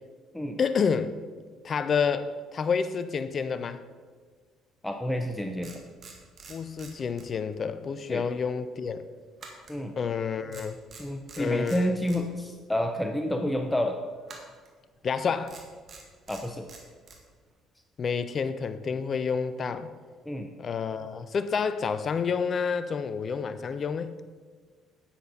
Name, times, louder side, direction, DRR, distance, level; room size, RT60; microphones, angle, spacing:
voice 1, 0.6-1.1 1.6-3.8 6.5-9.0 10.0-10.8 11.4-11.9 15.0-15.6 18.0-19.9 20.6-24.1, left 6 dB, 45° left, 12 dB, 0.5 m, -29 dB
voice 2, 4.8-5.8 8.1-8.2 9.7-9.9 11.0-14.0 16.3-16.7 20.3-20.5, equal, 10° left, 4 dB, 0.7 m, -29 dB
sound 1, 5.6-7.7 7.9-8.1 9.4-10.2 10.5-12.2 14.2-14.7 15.5-17.2, right 4 dB, 45° right, 2.0 m, -47 dB
10.0 x 7.5 x 4.2 m, 1.5 s
hypercardioid pair, 55°, 0 cm